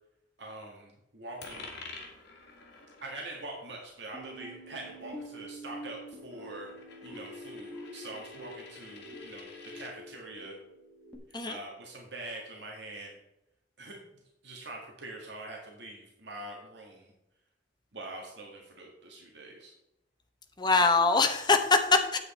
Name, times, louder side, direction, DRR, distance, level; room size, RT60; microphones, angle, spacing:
voice 1, 0.4-1.7 3.0-10.6 11.3-13.2 13.8-17.1 17.9-19.7, right 2 dB, 65° right, -1 dB, 1.8 m, -44 dB
Coin (dropping), 1.4-9.9, left 3 dB, 60° left, 2.2 m, -50 dB
sound 1, 4.1-11.2, equal, 10° left, 1.7 m, -47 dB
voice 2, 20.6-22.2, left 4 dB, 25° left, 6 dB, 0.9 m, -23 dB
8.5 x 8.3 x 4.3 m, 0.89 s
head